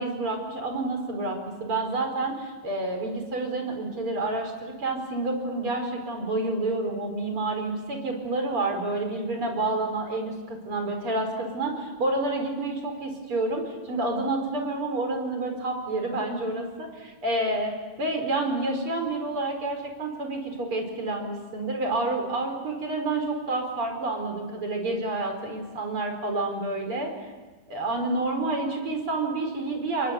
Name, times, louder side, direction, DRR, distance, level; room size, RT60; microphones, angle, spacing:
voice 1, 0.0-17.7 18.0-27.1 27.7-30.1, right 2 dB, 40° right, 4 dB, 5.5 m, -29 dB
29.5 x 23.0 x 8.4 m, 1.2 s
omnidirectional pair, 4.0 m